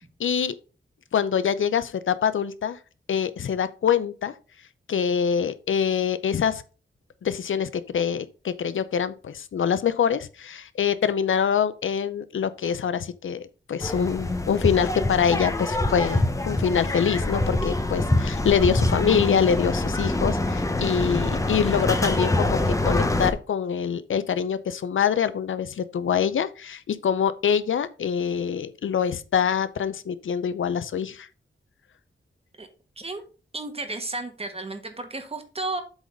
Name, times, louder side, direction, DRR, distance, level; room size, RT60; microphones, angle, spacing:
voice 1, 0.2-0.6 1.1-2.8 3.1-4.3 4.9-6.6 7.2-31.3, left 7 dB, 85° left, 0.6 m, -25 dB
sound 1, 13.8-23.3, left 2 dB, 15° left, 1.0 m, -25 dB
voice 2, 33.5-35.8, right 2 dB, 30° right, 1.5 m, -33 dB
8.0 x 4.0 x 5.3 m
wide cardioid pair, 100°, 20 cm